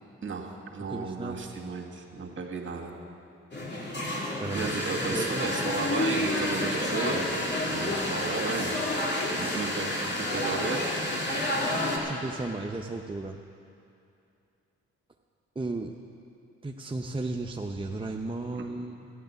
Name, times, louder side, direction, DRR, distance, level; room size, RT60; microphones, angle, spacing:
voice 1, 0.2-3.0 4.5-7.4 7.7-9.0 9.3-10.8 18.5-18.7, right 4 dB, 40° right, 1 dB, 2.1 m, -34 dB
voice 2, 0.9-1.5 4.4-5.7 12.0-13.4 15.6-16.0 16.6-19.1, right 2 dB, 15° right, 2 dB, 0.7 m, -35 dB
sound 1, 3.5-12.0, left 1 dB, 35° left, 3.0 m, -29 dB
13.0 x 10.0 x 6.9 m, 2.6 s
supercardioid pair, 55°, 30 cm